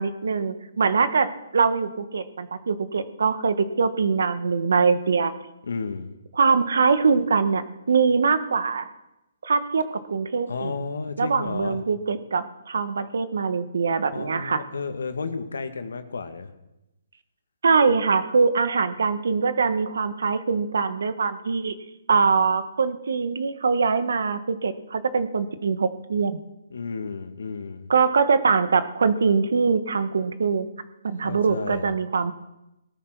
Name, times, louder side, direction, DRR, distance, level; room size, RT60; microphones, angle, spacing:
voice 1, 0.0-5.3 6.4-8.9 9.4-10.7 11.2-14.6 17.6-21.7 22.1-26.4 27.9-30.7 31.0-32.3, right 5 dB, 75° right, 12 dB, 1.5 m, -23 dB
voice 2, 5.7-6.1 10.5-11.8 14.1-16.5 26.7-27.9 31.2-31.9, left 4 dB, 85° left, 8 dB, 2.0 m, -32 dB
18.0 x 13.0 x 6.2 m, 0.93 s
hypercardioid pair, 160°, 0 cm